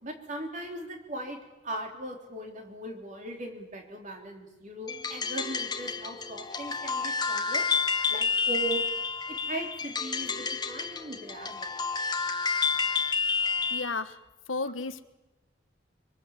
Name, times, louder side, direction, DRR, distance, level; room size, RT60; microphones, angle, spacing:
voice 1, 0.0-7.7 8.1-8.9 9.3-11.8, right 2 dB, 40° right, 3 dB, 3.7 m, -39 dB
sound 1, 4.9-13.9, left 5 dB, 20° left, 1.2 m, -30 dB
voice 2, 13.7-14.2 14.5-15.0, left 3 dB, 90° left, 11 dB, 1.3 m, -32 dB
24.5 x 24.0 x 7.5 m, 1.1 s
head